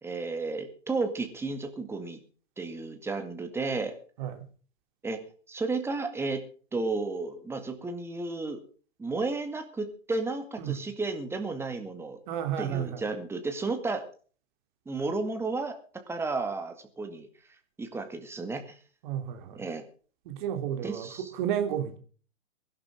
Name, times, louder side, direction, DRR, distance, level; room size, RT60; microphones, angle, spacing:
voice 1, 0.0-2.2 2.6-4.0 5.0-5.2 5.5-6.4 6.7-8.6 9.0-12.2 12.6-14.0 14.9-15.8 16.1-17.3 17.8-18.8 19.5-19.8 20.8-21.3, right 3 dB, 5° right, 6 dB, 2.1 m, -32 dB
voice 2, 12.3-13.0 19.0-19.6 20.2-22.0, right 10 dB, 40° right, 6 dB, 3.4 m, -32 dB
23.0 x 11.5 x 3.8 m, 0.40 s
figure-of-eight pair, 120°, 38 cm